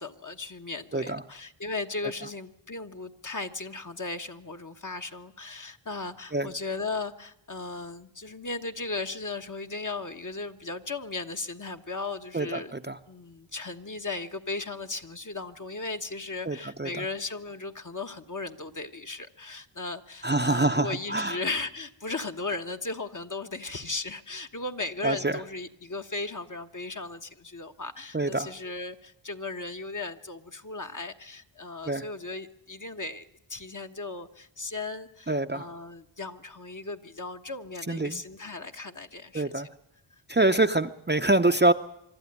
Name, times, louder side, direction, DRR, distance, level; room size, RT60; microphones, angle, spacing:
voice 1, 0.0-12.7 13.1-39.6, left 3 dB, 35° left, 6 dB, 1.2 m, -36 dB
voice 2, 12.3-13.0 16.5-17.0 20.2-21.4 25.0-25.4 28.1-28.5 31.9-32.0 35.3-35.7 37.9-38.2 39.3-39.7 40.3-41.7, right 2 dB, 20° right, 7 dB, 0.7 m, -25 dB
24.5 x 12.5 x 9.8 m, 0.81 s
cardioid pair, 45°, 50 cm